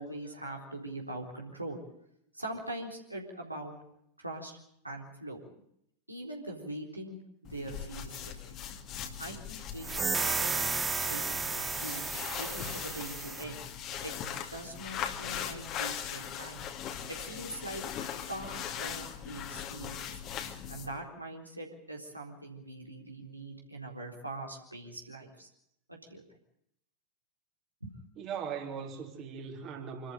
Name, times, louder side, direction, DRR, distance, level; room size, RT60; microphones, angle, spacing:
voice 1, 0.0-1.8 2.3-3.7 4.2-4.5 4.8-5.4 6.1-8.6 9.2-10.6 11.1-12.1 12.4-13.7 14.0-14.1 14.5-16.6 17.1-17.8 18.3-20.1 20.7-25.5 25.9-26.2 27.8-28.0, right 1 dB, 85° right, 4.1 m, -42 dB
sound 1, 7.4-21.0, left 8 dB, 35° left, 2.5 m, -40 dB
sound 2, 9.8-13.5, right 4 dB, 15° right, 1.0 m, -33 dB
voice 2, 28.2-30.1, right 7 dB, 35° right, 3.4 m, -39 dB
26.0 x 13.5 x 9.3 m
figure-of-eight pair, 90°, 0 cm